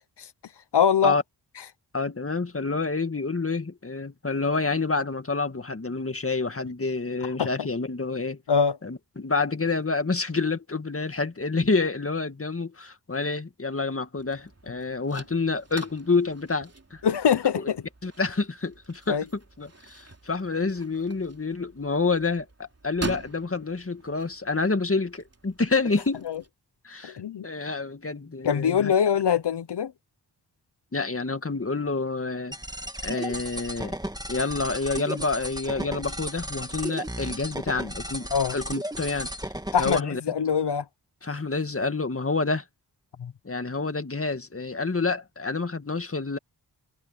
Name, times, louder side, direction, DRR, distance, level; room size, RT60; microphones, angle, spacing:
voice 1, 0.7-1.1 7.4-7.5 8.5-8.8 17.0-17.8 19.1-19.2 26.3-26.4 27.0-27.5 28.4-29.9 38.3-38.6 39.7-40.8 43.2-43.3, left 7 dB, 85° left, 1.0 m, -23 dB
voice 2, 1.9-8.4 8.8-17.0 17.6-17.7 18.0-26.3 26.8-27.2 27.4-28.9 30.9-32.6 33.0-34.0 34.3-39.5 39.8-40.2 41.2-42.6 43.4-46.4, left 3 dB, 35° left, 2.0 m, -28 dB
sound 1, 14.2-26.5, right 3 dB, 35° right, 3.4 m, -44 dB
sound 2, 32.5-40.0, right 1 dB, 10° right, 1.8 m, -35 dB
cardioid pair, 50°, 40 cm